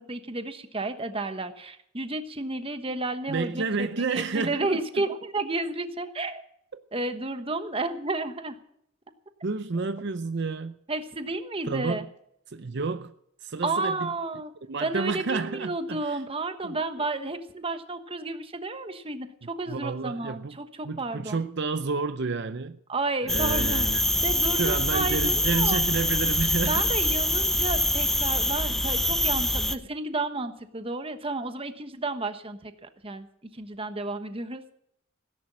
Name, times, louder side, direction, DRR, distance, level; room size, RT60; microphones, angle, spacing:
voice 1, 0.0-6.4 6.9-8.6 10.9-12.0 13.6-14.5 14.8-21.4 22.9-23.9 24.2-25.8 26.7-33.3 33.5-34.6, right 2 dB, 25° right, 1.2 m, -32 dB
voice 2, 3.3-5.0 6.7-6.8 9.4-10.7 11.6-12.1 12.5-13.1 13.4-14.1 14.7-16.2 16.6-16.8 19.7-20.6 20.8-22.8 23.2-24.3 24.6-26.8, right 4 dB, 55° right, 0.6 m, -30 dB
sound 1, 23.3-29.8, left 1 dB, ahead, 0.6 m, -25 dB
17.0 x 11.0 x 6.1 m
head